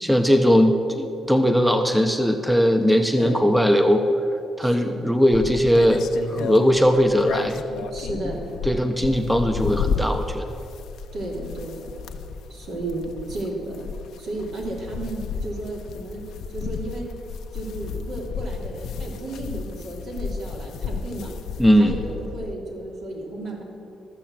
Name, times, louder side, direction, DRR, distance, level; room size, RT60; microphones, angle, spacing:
voice 1, 0.0-4.0 4.6-7.6 8.7-10.5 21.6-21.9, equal, 5° right, 6 dB, 0.7 m, -19 dB
voice 2, 2.9-3.5 4.6-5.0 7.9-8.4 11.1-11.9 12.5-13.9 14.2-16.2 16.5-17.0 17.5-21.3 21.7-23.6, right 2 dB, 70° right, -1 dB, 2.8 m, -33 dB
sound 1, 5.3-22.5, left 5 dB, 75° left, 0.6 m, -32 dB
13.5 x 6.9 x 7.5 m, 2.7 s
cardioid pair, 90°, 0 cm